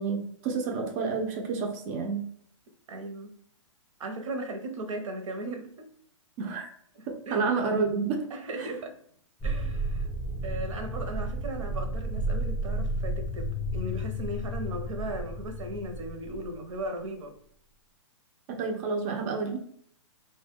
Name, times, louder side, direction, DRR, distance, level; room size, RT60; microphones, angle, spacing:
voice 1, 0.0-2.3 6.4-6.7 7.1-8.3 8.6-8.7 18.5-19.6, right 4 dB, 30° right, 2 dB, 0.4 m, -29 dB
voice 2, 2.9-3.3 4.0-5.9 7.3-7.4 8.3-9.0 9.4-10.1 10.4-17.4, right 1 dB, 75° right, 5 dB, 0.7 m, -37 dB
sound 1, 9.4-16.8, right 1 dB, 10° left, 0.6 m, -32 dB
2.2 x 2.1 x 3.3 m, 0.63 s
hypercardioid pair, 150°, 17 cm